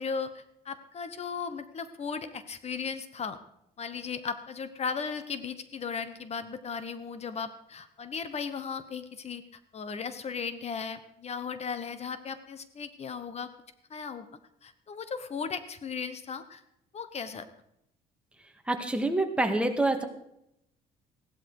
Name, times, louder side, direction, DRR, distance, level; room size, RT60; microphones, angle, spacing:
voice 1, 0.0-3.4 3.8-9.4 9.7-13.5 13.9-14.3 14.6-16.6 16.9-17.5, left 5 dB, 40° left, 12 dB, 1.1 m, -36 dB
voice 2, 18.7-20.1, right 2 dB, 5° right, 5 dB, 1.8 m, -26 dB
16.0 x 12.0 x 4.8 m, 0.78 s
cardioid pair, 110°, 17 cm